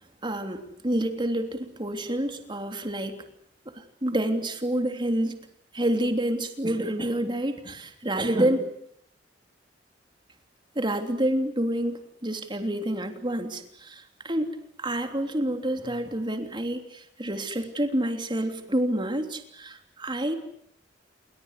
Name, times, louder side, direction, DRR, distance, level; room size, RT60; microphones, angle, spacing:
voice 1, 0.2-3.2 3.7-5.5 5.7-8.7 10.7-14.5 14.8-20.4, right 1 dB, 25° right, 6 dB, 3.2 m, -28 dB
28.5 x 23.0 x 8.3 m, 0.68 s
head